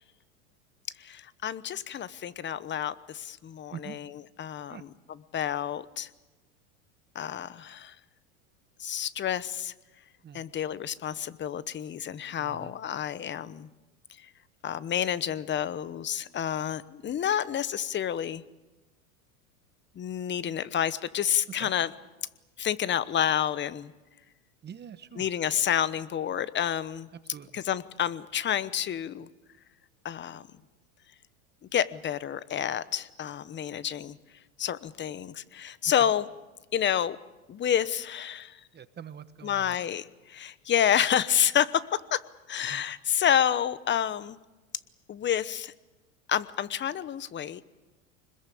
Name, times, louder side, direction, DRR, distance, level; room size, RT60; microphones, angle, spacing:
voice 1, 1.0-6.1 7.1-7.9 8.8-9.7 10.3-13.7 14.2-14.3 14.6-18.4 19.9-21.9 22.6-23.9 25.2-27.1 27.5-29.3 30.0-30.5 31.7-34.2 34.6-36.3 36.7-37.2 37.5-38.6 39.4-42.2 42.5-44.4 45.1-45.7 46.3-47.6, left 9 dB, 25° left, 16 dB, 1.0 m, -29 dB
voice 2, 12.4-12.7 21.6-21.7 24.6-25.3 27.3-27.6 36.0-36.1 38.7-39.8 42.7-42.8, right 8 dB, 25° right, 12 dB, 1.2 m, -44 dB
25.5 x 21.0 x 8.5 m, 1.1 s
hypercardioid pair, 105°, 42 cm